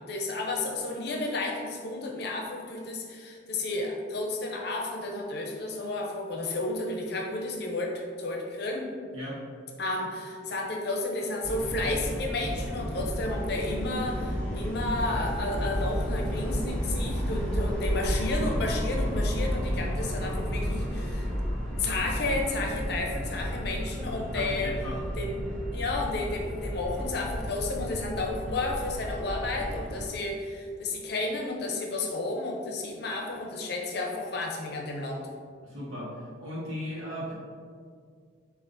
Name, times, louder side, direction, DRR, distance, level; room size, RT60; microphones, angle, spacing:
voice 1, 0.0-8.9 9.8-21.3 21.8-24.7 25.2-25.4 25.7-35.3, left 2 dB, 55° left, 0 dB, 0.6 m, -32 dB
sound 1, 11.4-30.1, equal, 5° left, 0.5 m, -32 dB
voice 2, 24.3-25.0 35.6-36.1 36.4-37.3, left 1 dB, 85° right, -5 dB, 1.0 m, -36 dB
6.7 x 2.5 x 2.6 m, 2.1 s
head